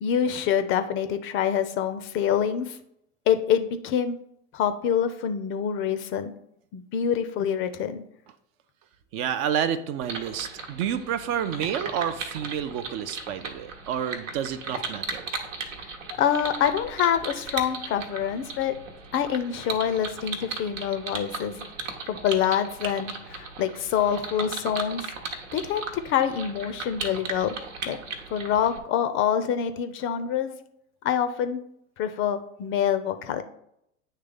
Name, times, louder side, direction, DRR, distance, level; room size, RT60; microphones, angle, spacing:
voice 1, 0.0-2.8 3.3-4.2 4.5-6.3 6.7-8.0 15.8-15.9 16.2-18.7 19.1-21.7 22.1-25.1 25.5-27.5 27.9-28.0 28.3-30.6 31.0-31.6 32.0-33.4, left 9 dB, 30° left, 10 dB, 0.5 m, -26 dB
voice 2, 9.1-15.3, right 9 dB, 40° right, 11 dB, 0.5 m, -29 dB
sound 1, 10.0-28.8, right 4 dB, 75° right, 1.0 m, -37 dB
8.9 x 3.3 x 3.4 m, 0.75 s
figure-of-eight pair, 80°, 39 cm